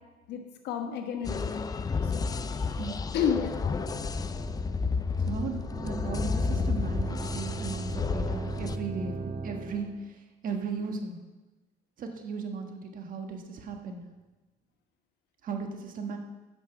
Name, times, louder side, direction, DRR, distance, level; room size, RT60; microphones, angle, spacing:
voice 1, 0.6-2.8 3.1-3.8, left 7 dB, 80° left, 5 dB, 1.3 m, -32 dB
sound 1, 1.2-8.8, left 4 dB, 20° left, 0.4 m, -31 dB
sound 2, 3.2-10.1, right 4 dB, 35° right, 0.6 m, -39 dB
voice 2, 5.2-11.2 12.0-14.0 15.4-16.2, right 4 dB, 55° right, 4 dB, 1.4 m, -36 dB
9.0 x 6.1 x 5.9 m, 1.2 s
cardioid pair, 110°, 17 cm